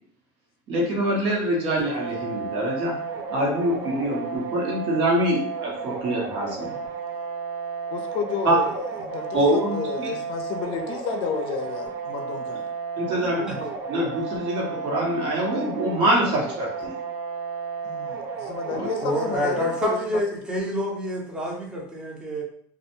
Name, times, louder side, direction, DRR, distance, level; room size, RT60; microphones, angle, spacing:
voice 1, 0.7-2.9 3.3-6.8 8.4-8.6 9.3-10.1 13.0-13.4 13.9-16.9 18.7-18.8, right 1 dB, 55° right, -3 dB, 1.1 m, -24 dB
sound 1, 1.8-19.9, right 5 dB, 75° right, 0.7 m, -33 dB
voice 2, 7.9-8.7 9.0-12.7 17.8-20.2, left 6 dB, 60° left, 5 dB, 0.5 m, -31 dB
voice 3, 19.0-22.4, equal, 10° right, -2 dB, 0.7 m, -28 dB
2.3 x 2.1 x 2.9 m, 0.63 s
supercardioid pair, 120°, 10 cm